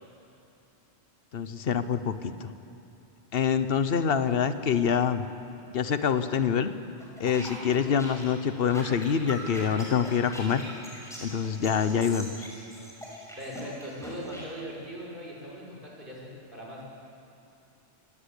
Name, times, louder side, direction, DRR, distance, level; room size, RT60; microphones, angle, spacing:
voice 1, 1.3-2.5 3.3-5.3 5.7-6.7 7.2-10.6 11.2-12.5, left 7 dB, 60° left, 11 dB, 1.2 m, -26 dB
sound 1, 7.0-14.4, equal, 5° left, 6.0 m, -42 dB
voice 2, 13.4-16.8, equal, 50° right, -4 dB, 6.1 m, -40 dB
26.0 x 18.5 x 8.4 m, 2.7 s
omnidirectional pair, 1.1 m